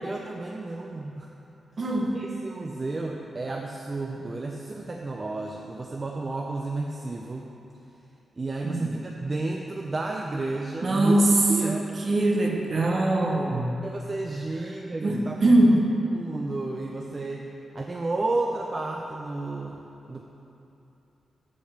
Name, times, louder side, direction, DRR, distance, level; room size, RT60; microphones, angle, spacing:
voice 1, 0.0-1.3 2.1-7.5 8.4-11.2 11.5-11.9 13.8-15.7 16.1-17.5 17.7-20.2, right 2 dB, 35° right, 0 dB, 0.5 m, -32 dB
voice 2, 1.8-2.2 8.6-8.9 10.8-11.8 12.0-13.7 15.0-15.9, right 1 dB, 50° right, 0 dB, 1.0 m, -22 dB
6.8 x 5.4 x 5.0 m, 3.0 s
cardioid pair, 70°, 0 cm